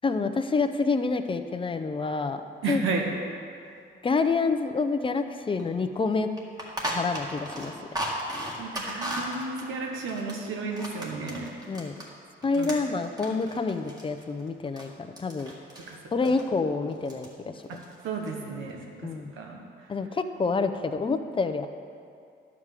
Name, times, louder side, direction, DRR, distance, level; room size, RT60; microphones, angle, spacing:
voice 1, 0.0-2.4 2.7-2.8 4.0-6.3 6.9-7.7 11.7-11.9 12.4-15.5 16.1-17.8 19.0-19.3 19.9-21.7, left 4 dB, 25° left, 8 dB, 0.6 m, -27 dB
voice 2, 2.6-3.1 8.6-11.5 12.6-12.8 15.9-16.0 16.2-16.3 18.0-19.6, right 4 dB, 90° right, 1 dB, 1.3 m, -33 dB
sound 1, 5.6-5.7 5.9-6.0 6.4-12.1 12.4-14.9 15.2-15.9 16.2-16.4 16.9-17.3 17.5-18.3, equal, 20° right, 1.9 m, -36 dB
11.0 x 4.8 x 7.4 m, 2.4 s
cardioid pair, 90°, 20 cm